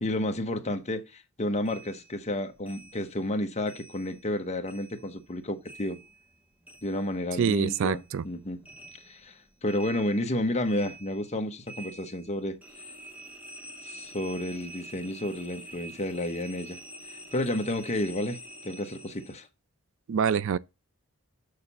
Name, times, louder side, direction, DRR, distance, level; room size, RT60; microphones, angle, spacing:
voice 1, 0.0-6.0 6.8-8.6 9.0-12.6 13.8-16.8 17.3-18.4 18.6-19.5, left 1 dB, 30° left, 1.0 m, -31 dB
sound 1, 1.7-4.4 4.6-7.4 7.6-19.4, right 1 dB, 5° right, 0.9 m, -47 dB
voice 2, 7.4-8.2 20.1-20.6, right 7 dB, 65° right, 0.4 m, -25 dB
6.6 x 5.7 x 5.4 m
head